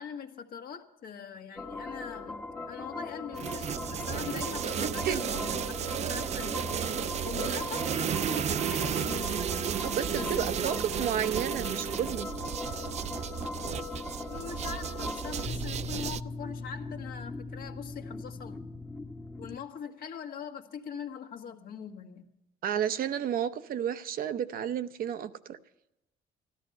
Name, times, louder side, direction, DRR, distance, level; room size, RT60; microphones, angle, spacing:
voice 1, 0.0-6.7 7.2-9.7 10.1-10.7 14.3-18.6 19.4-22.3, left 7 dB, 60° left, 1.7 m, -42 dB
sound 1, 1.6-19.6, left 3 dB, 10° left, 1.1 m, -39 dB
sound 2, 3.4-16.2, right 9 dB, 40° right, 0.5 m, -33 dB
voice 2, 4.8-5.2 9.8-12.3 22.6-25.6, right 9 dB, 60° right, 0.8 m, -32 dB
14.0 x 12.0 x 6.7 m
cardioid pair, 110°, 17 cm